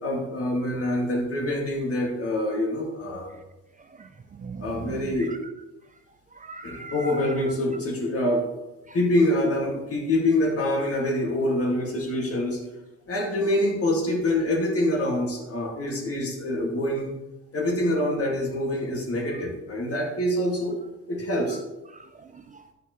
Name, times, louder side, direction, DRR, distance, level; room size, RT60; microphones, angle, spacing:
voice 1, 0.0-3.3 4.6-5.3 6.6-8.4 8.9-12.6 13.1-17.1 17.5-20.8 21.1-21.6, left 1 dB, 50° left, 0 dB, 2.0 m, -25 dB
voice 2, 4.0-5.4 6.3-7.4 8.9-9.0 21.9-22.6, right 4 dB, 25° right, 8 dB, 0.4 m, -40 dB
9.3 x 5.8 x 3.0 m, 1.0 s
cardioid pair, 90°, 30 cm